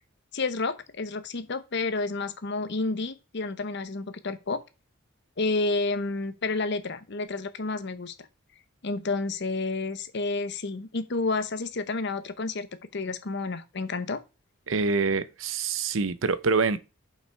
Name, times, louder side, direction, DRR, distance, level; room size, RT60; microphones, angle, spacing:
voice 1, 0.3-4.6 5.4-8.1 8.8-12.7 12.9-14.2, left 3 dB, 60° left, 0.9 m, -30 dB
voice 2, 14.7-16.8, right 4 dB, 75° right, 0.7 m, -25 dB
7.2 x 5.7 x 4.6 m
head